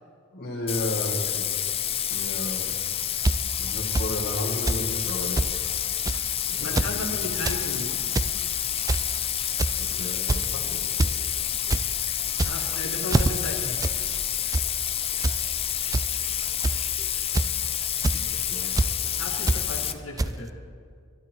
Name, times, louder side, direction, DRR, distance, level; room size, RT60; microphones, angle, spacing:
voice 1, 0.3-1.4 2.1-2.7 3.6-5.5 6.0-7.0 9.8-10.8 18.1-18.8, left 1 dB, 50° left, -1 dB, 2.2 m, -34 dB
Bathtub (filling or washing), 0.7-19.9, left 10 dB, 30° left, 0.6 m, -29 dB
sound 1, 3.2-3.3 3.9-4.1 4.7-4.8 5.1-5.2 5.4-5.5 6.0-6.3 6.6-6.9 7.3-7.6 8.0-8.3 8.9-9.2 9.6-9.9 10.3-10.5 11.0-11.1 11.5-11.8 12.3-12.7 13.1-13.3 13.8-14.0 14.3-14.6 15.2-15.4 15.9-16.0 16.6-16.9 17.3-17.6 18.0-18.2 18.7-18.9 19.5-19.6 20.2-20.3, right 2 dB, 15° right, 0.4 m, -24 dB
voice 2, 6.6-7.9 12.4-13.8 19.2-20.5, left 2 dB, 80° left, 0 dB, 2.1 m, -34 dB
23.5 x 12.0 x 4.6 m, 2.1 s
head